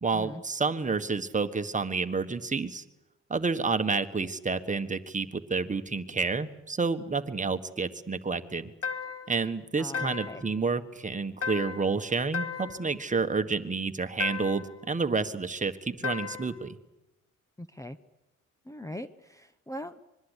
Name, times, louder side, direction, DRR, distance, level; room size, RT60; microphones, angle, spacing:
voice 1, 0.0-2.8 3.3-8.7 9.3-16.8, right 4 dB, 25° right, 9 dB, 1.6 m, -29 dB
sound 1, 8.8-9.4 9.9-10.5 11.4-12.0 12.3-12.9 14.2-14.7 16.0-16.6, left 6 dB, 50° left, 2.0 m, -35 dB
voice 2, 9.8-10.4 17.6-18.0 18.6-20.0, equal, 10° left, 11 dB, 1.0 m, -41 dB
25.5 x 22.5 x 8.3 m, 0.94 s
cardioid pair, 90°, 30 cm